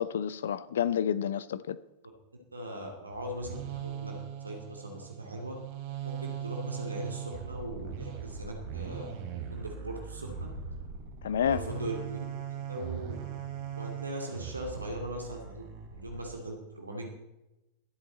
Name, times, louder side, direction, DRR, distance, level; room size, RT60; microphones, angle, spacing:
voice 1, 0.0-1.8 11.2-11.6, left 9 dB, 60° left, 0.6 m, -29 dB
voice 2, 2.5-4.1 4.4-5.5 6.0-9.1 9.5-10.5 11.4-13.2 13.7-17.1, right 1 dB, 80° right, 2.6 m, -39 dB
sound 1, 3.1-16.2, right 8 dB, 50° right, 2.9 m, -40 dB
23.5 x 8.2 x 4.2 m
figure-of-eight pair, 90°, 0 cm